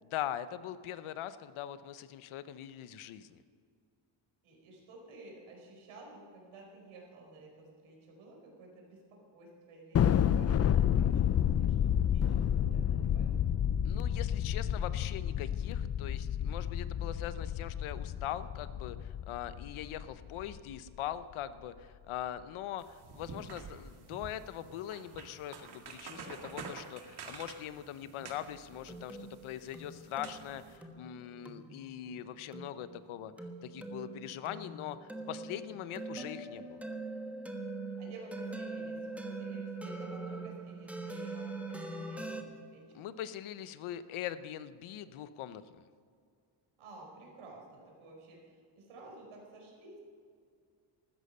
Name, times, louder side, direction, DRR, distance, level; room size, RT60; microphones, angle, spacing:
voice 1, 0.1-3.4 13.8-33.3 33.6-36.8 42.9-45.9, left 11 dB, 85° left, 13 dB, 0.9 m, -42 dB
voice 2, 4.4-13.4 38.0-43.0 46.8-50.0, right 2 dB, 90° right, -1 dB, 4.9 m, -53 dB
Thunder, 9.9-20.6, left 9 dB, 35° left, 0.4 m, -30 dB
sound 1, 22.8-30.8, right 5 dB, 50° right, 2.0 m, -49 dB
sound 2, 28.2-42.4, right 2 dB, 5° right, 1.2 m, -43 dB
14.5 x 13.5 x 5.5 m, 2.2 s
cardioid pair, 145°, 48 cm